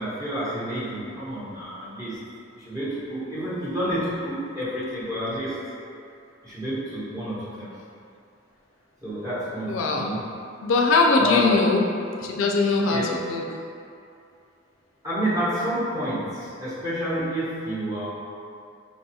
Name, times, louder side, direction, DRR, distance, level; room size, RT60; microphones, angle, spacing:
voice 1, 0.0-2.2 2.5-5.6 6.4-7.7 9.0-10.2 11.2-11.6 12.9-13.1 15.0-18.1, equal, 15° right, -11 dB, 1.0 m, -29 dB
voice 2, 9.7-10.1 10.6-11.8 12.2-13.5, left 3 dB, 80° left, 1 dB, 0.4 m, -21 dB
4.5 x 2.3 x 2.8 m, 2.5 s
head